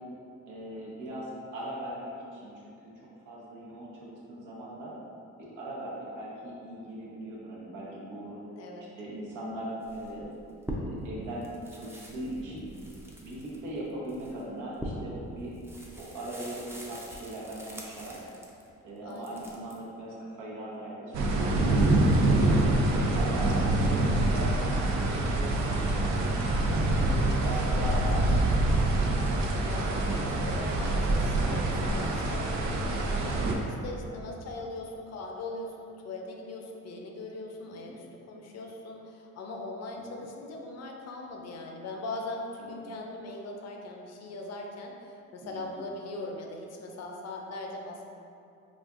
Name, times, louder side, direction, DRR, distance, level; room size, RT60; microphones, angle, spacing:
voice 1, 0.5-2.7 3.2-4.9 5.4-8.4 9.0-10.3 10.8-11.4 11.7-12.7 13.2-15.6 15.9-18.2 18.8-22.0 22.3-22.4 22.9-26.4 27.0-29.3 37.8-37.9 40.0-40.1 42.6-42.8 45.4-45.8, right 1 dB, 80° right, -6 dB, 0.9 m, -39 dB
voice 2, 8.6-8.9 19.0-19.5 23.2-23.5 26.7-28.3 29.6-48.0, left 2 dB, 60° left, 1 dB, 0.5 m, -40 dB
sound 1, 9.8-11.1 11.4-18.7 19.1-19.8, right 1 dB, 10° right, 0.4 m, -42 dB
sound 2, 21.1-33.5, right 2 dB, 65° right, 0.5 m, -25 dB
4.1 x 2.4 x 2.4 m, 2.6 s
cardioid pair, 90°, 30 cm